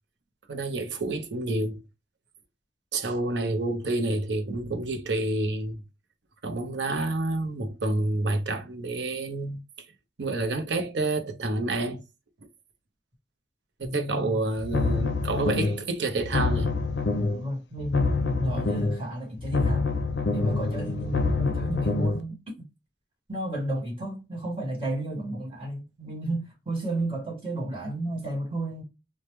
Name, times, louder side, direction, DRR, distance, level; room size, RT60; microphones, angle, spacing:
voice 1, 0.5-1.8 2.9-5.8 6.4-9.6 10.2-12.0 13.8-16.7, right 2 dB, 65° right, 0.6 m, -28 dB
voice 2, 13.8-14.4 17.3-19.9 20.3-22.4 23.3-28.8, right 1 dB, 30° right, 1.7 m, -32 dB
sound 1, 14.6-15.9 16.2-17.5 17.8-19.1 19.4-22.2, left 3 dB, 65° left, 0.5 m, -26 dB
3.1 x 2.1 x 3.1 m
head